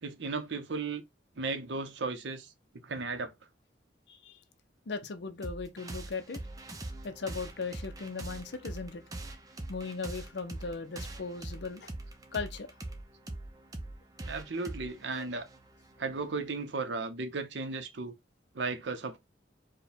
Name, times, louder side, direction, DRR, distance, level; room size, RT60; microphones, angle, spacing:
voice 1, 0.0-1.0 1.4-2.5 2.8-3.3 14.3-15.5 16.0-18.1 18.5-19.2, right 4 dB, 70° right, 0.7 m, -35 dB
voice 2, 4.1-4.4 4.9-6.4 7.0-9.0 9.7-11.9 12.3-12.7, left 4 dB, 65° left, 0.6 m, -38 dB
Dark Dream, 5.4-16.5, right 2 dB, 20° right, 0.5 m, -43 dB
4.7 x 2.2 x 3.3 m
head